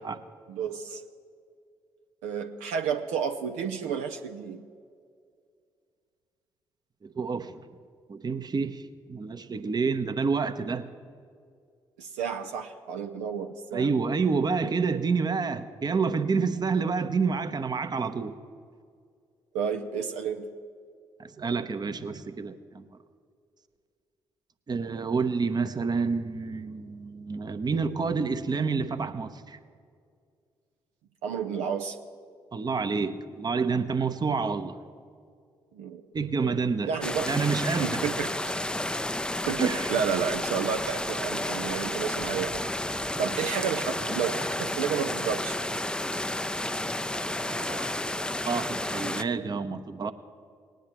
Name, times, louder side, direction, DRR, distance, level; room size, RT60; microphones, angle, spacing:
voice 1, 0.5-1.0 2.2-4.6 12.0-13.9 19.5-20.5 31.2-32.0 35.7-36.0 36.9-37.3 37.8-38.5 39.5-42.6 43.2-45.6, right 7 dB, 75° right, 5 dB, 0.6 m, -31 dB
voice 2, 7.0-7.6 8.1-8.8 9.1-10.8 13.7-18.3 21.2-22.8 24.7-29.6 32.5-34.8 36.1-36.9 37.3-38.0 39.6-39.9 47.1-47.9 48.5-50.1, right 5 dB, 35° right, 11 dB, 0.9 m, -28 dB
sound 1, 37.0-49.2, left 1 dB, 5° left, 0.5 m, -31 dB
19.5 x 10.5 x 3.0 m, 2.2 s
hypercardioid pair, 40°, 12 cm